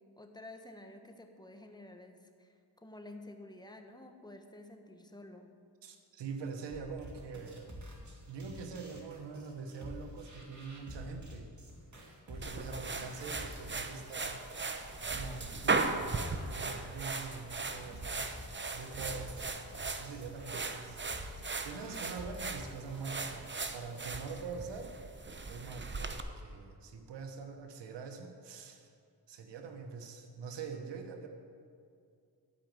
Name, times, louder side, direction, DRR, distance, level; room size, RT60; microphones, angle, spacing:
voice 1, 0.2-2.5 2.8-5.5, left 1 dB, 10° left, 5 dB, 1.4 m, -51 dB
voice 2, 5.8-7.8 8.3-11.5 12.3-14.4 15.1-18.2 18.7-19.3 19.9-21.1 21.6-24.9 25.5-28.9 29.3-31.3, right 5 dB, 75° right, 5 dB, 1.2 m, -44 dB
sound 1, 6.7-23.4, equal, 40° right, 2.5 m, -50 dB
sound 2, 12.4-26.2, right 3 dB, 25° right, 0.9 m, -38 dB
sound 3, 17.7-18.1 19.0-22.2 23.0-23.4, left 2 dB, 80° left, 2.8 m, -59 dB
12.5 x 5.2 x 7.7 m, 2.4 s
supercardioid pair, 50°, 42 cm